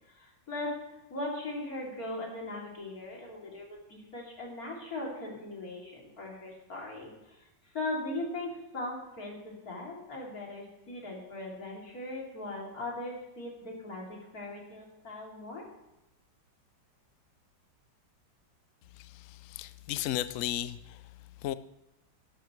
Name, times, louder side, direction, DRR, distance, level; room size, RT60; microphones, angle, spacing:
voice 1, 0.2-0.8 1.1-7.4 7.7-15.7, left 2 dB, 50° left, -2 dB, 3.4 m, -39 dB
voice 2, 19.5-20.8 21.4-21.5, left 13 dB, 90° left, 14 dB, 0.7 m, -33 dB
12.0 x 12.0 x 3.2 m, 0.97 s
omnidirectional pair, 2.0 m